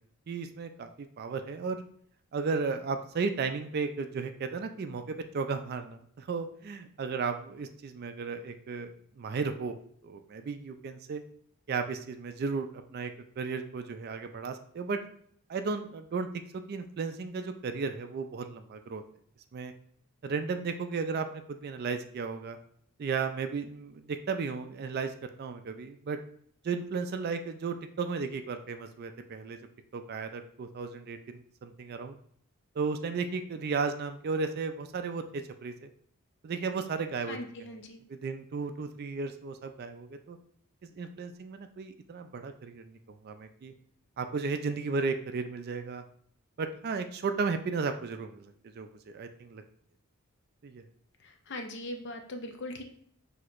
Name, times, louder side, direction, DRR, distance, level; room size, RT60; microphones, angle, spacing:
voice 1, 0.3-1.8 2.3-8.9 9.2-9.8 10.0-11.2 11.7-15.0 15.5-16.3 16.5-19.0 19.5-19.7 20.2-22.6 23.0-25.1 25.4-26.2 26.6-29.6 29.9-32.2 32.8-35.9 36.4-37.4 37.7-37.8 38.1-40.4 40.8-43.7 44.2-46.0 46.6-48.4 48.8-49.6 50.6-50.8, right 4 dB, 45° right, 8 dB, 0.3 m, -34 dB
voice 2, 37.3-38.0 51.2-52.8, left 1 dB, 50° left, 5 dB, 0.5 m, -40 dB
6.0 x 2.8 x 2.5 m, 0.62 s
head